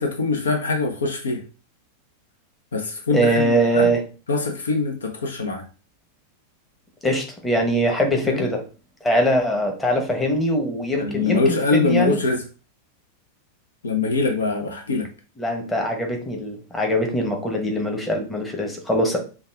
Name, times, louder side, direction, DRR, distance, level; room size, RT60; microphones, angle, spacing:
voice 1, 0.0-1.4 2.7-3.9 4.3-5.6 8.2-8.4 11.0-12.4 13.8-15.1, left 3 dB, 70° left, 5 dB, 0.7 m, -23 dB
voice 2, 3.1-4.0 7.0-8.6 9.0-12.2 15.4-19.2, equal, 10° left, 2 dB, 1.1 m, -22 dB
5.4 x 2.3 x 3.4 m, 0.35 s
figure-of-eight pair, 90°, 0 cm